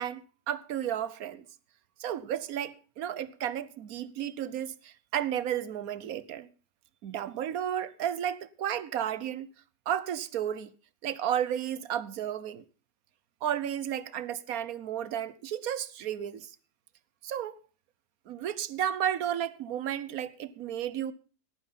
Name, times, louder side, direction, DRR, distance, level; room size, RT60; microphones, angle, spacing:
voice 1, 0.0-1.4 2.0-6.5 7.0-9.5 9.9-10.7 11.0-12.6 13.4-16.6 17.2-17.6 18.3-21.1, right 10 dB, 65° right, 1.2 m, -33 dB
17.5 x 9.4 x 5.7 m
omnidirectional pair, 1.8 m